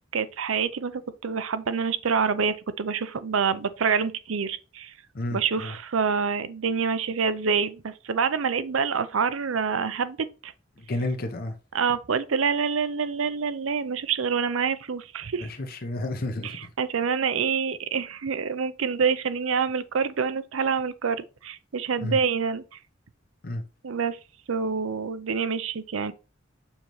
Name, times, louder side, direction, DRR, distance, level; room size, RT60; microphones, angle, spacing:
voice 1, 0.1-4.9 5.3-10.5 11.7-15.5 16.4-22.8 23.8-24.2 24.5-26.1, right 6 dB, 85° right, 0.6 m, -27 dB
voice 2, 5.1-5.8 10.8-11.6 15.3-16.7 22.0-22.2 23.4-23.6, left 1 dB, 50° left, 0.9 m, -31 dB
7.1 x 5.2 x 3.1 m
head